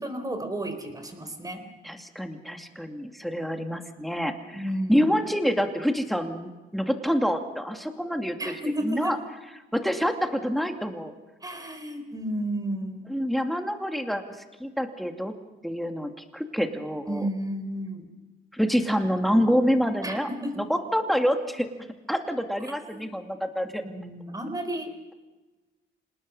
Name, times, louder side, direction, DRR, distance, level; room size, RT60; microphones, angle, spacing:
voice 1, 0.0-1.6 4.5-5.1 8.4-9.1 11.4-13.0 17.1-18.1 20.0-20.5 22.8-23.0 23.8-24.9, right 1 dB, 20° right, 6 dB, 4.3 m, -32 dB
voice 2, 1.8-4.6 4.9-8.4 8.8-9.2 9.7-11.1 13.1-15.3 15.6-17.3 18.5-20.3 20.6-21.7 22.1-23.8, equal, ahead, 5 dB, 2.4 m, -27 dB
26.5 x 19.5 x 5.6 m, 1.2 s
cardioid pair, 90°, 20 cm